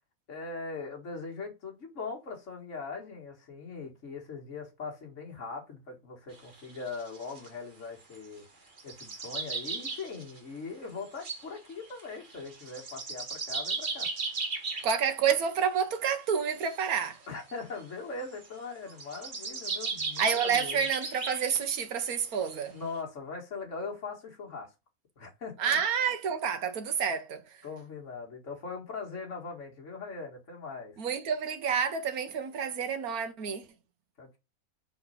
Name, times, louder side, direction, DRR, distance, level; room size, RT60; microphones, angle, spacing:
voice 1, 0.3-8.4 8.8-14.5 17.3-20.9 22.7-24.7 25.2-25.8 27.6-31.0 34.2-34.4, left 4 dB, 55° left, 2.0 m, -41 dB
sound 1, 6.3-7.5 8.0-8.2 8.8-10.4 11.0-14.9 16.4-17.5 18.2-18.5 18.9-21.6 22.2-22.3 22.5-22.7, right 4 dB, 40° right, 1.2 m, -36 dB
voice 2, 14.8-17.2 20.2-22.7 25.6-27.4 31.0-33.6, right 7 dB, 90° right, 1.4 m, -29 dB
4.2 x 4.2 x 5.5 m
omnidirectional pair, 1.5 m